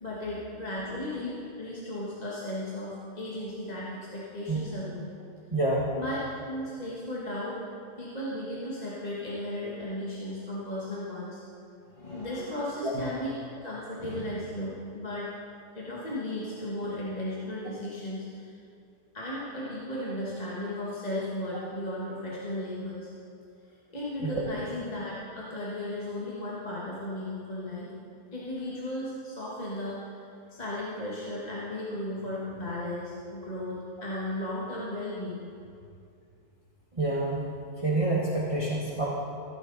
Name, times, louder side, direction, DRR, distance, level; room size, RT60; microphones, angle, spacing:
voice 1, 0.0-5.0 6.0-6.2 6.5-7.6 8.0-11.4 11.8-13.3 13.6-15.3 15.7-18.5 19.1-23.1 23.9-27.9 28.3-30.2 30.5-35.5, left 1 dB, 25° left, -6 dB, 1.5 m, -35 dB
voice 2, 5.5-6.0 12.8-12.9 24.1-24.4 36.9-37.5 37.8-39.1, right 2 dB, 20° right, -5 dB, 1.2 m, -28 dB
15.0 x 9.2 x 3.9 m, 2.4 s
omnidirectional pair, 1.7 m